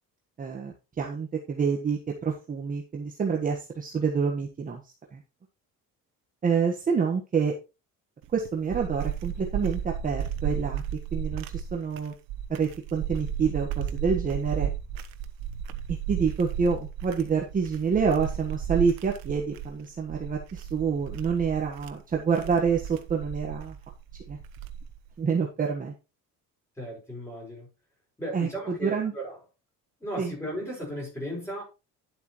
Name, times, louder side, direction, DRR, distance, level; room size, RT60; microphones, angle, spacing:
voice 1, 0.4-4.8 5.1-5.2 6.4-7.5 8.3-10.8 11.1-12.1 12.5-14.7 16.1-23.7 24.3-24.4 25.2-25.9 28.3-29.1 30.2-30.3, right 6 dB, 25° right, 1.4 m, -27 dB
sound 1, 8.2-25.1, right 9 dB, 85° right, 1.2 m, -34 dB
voice 2, 26.8-27.7 28.2-29.4 30.0-31.6, equal, 10° left, 6.1 m, -35 dB
11.5 x 7.9 x 3.1 m
cardioid pair, 170°, 33 cm